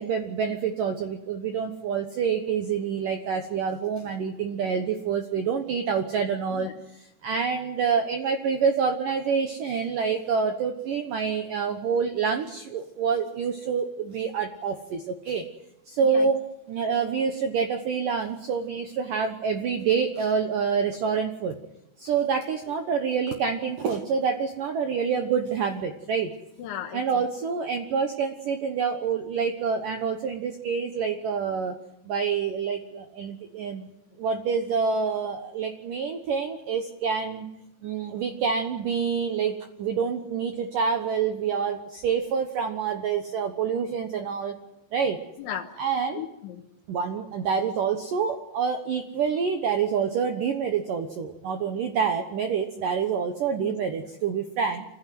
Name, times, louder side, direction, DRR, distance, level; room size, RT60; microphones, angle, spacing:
voice 1, 0.0-6.7 7.2-15.5 15.9-16.4 16.7-21.6 22.0-26.3 26.9-31.8 32.1-33.9 34.2-37.5 37.8-44.5 44.9-45.2 45.8-46.2 46.9-54.9, right 6 dB, 85° right, 6 dB, 1.9 m, -27 dB
voice 2, 26.6-27.2 45.4-45.7 46.2-46.6 53.6-53.8, left 10 dB, 75° left, 1 dB, 3.5 m, -35 dB
26.5 x 16.0 x 9.3 m, 0.89 s
omnidirectional pair, 5.7 m